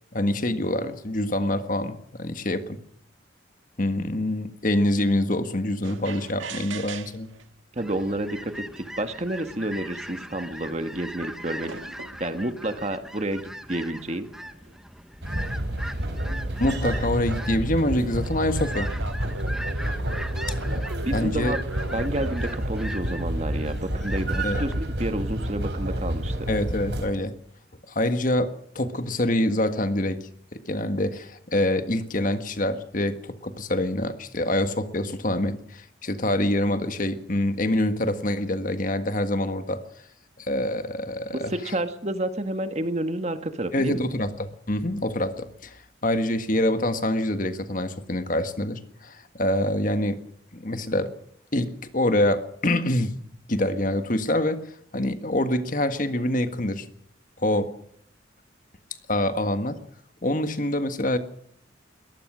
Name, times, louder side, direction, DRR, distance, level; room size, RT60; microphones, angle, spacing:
voice 1, 0.1-2.8 3.8-7.3 16.6-18.9 21.1-21.5 24.4-24.6 26.5-27.3 27.9-39.8 40.4-41.7 43.7-50.2 50.5-51.1 51.5-53.2 53.5-56.9 57.4-57.7 59.1-59.8 60.2-61.2, left 1 dB, 45° left, 9 dB, 1.7 m, -26 dB
sound 1, 5.8-7.4 8.4-8.5 9.2-9.3 9.6-10.4 11.2-12.3 13.2-14.8 17.4-17.6 18.6-22.5, right 3 dB, 90° right, 1.9 m, -40 dB
voice 2, 7.7-11.8 12.2-14.3 21.0-21.6 21.9-26.5 41.5-44.0, right 1 dB, 35° right, 8 dB, 1.6 m, -30 dB
sound 2, 7.8-24.9, equal, 5° right, 1.1 m, -40 dB
sound 3, 15.2-27.1, right 1 dB, 60° right, 4.7 m, -29 dB
22.5 x 19.0 x 6.3 m, 0.67 s
head